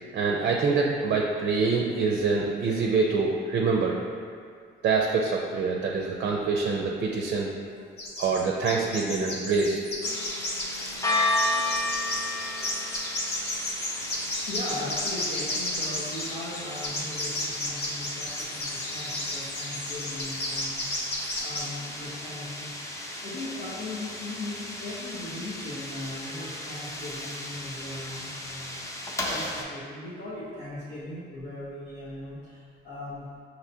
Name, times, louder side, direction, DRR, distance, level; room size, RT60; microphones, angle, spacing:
voice 1, 0.1-4.0 4.8-7.5 8.2-9.8 12.6-12.7, right 4 dB, 55° right, -1 dB, 0.5 m, -25 dB
sound 1, 8.0-8.4 8.6-21.6, left 1 dB, 55° left, 0.9 m, -33 dB
sound 2, 10.0-29.6, left 2 dB, 15° left, 0.5 m, -34 dB
voice 2, 14.5-33.3, left 1 dB, 80° left, -11 dB, 1.0 m, -39 dB
5.5 x 2.9 x 2.7 m, 2.1 s
cardioid pair, 90°, 20 cm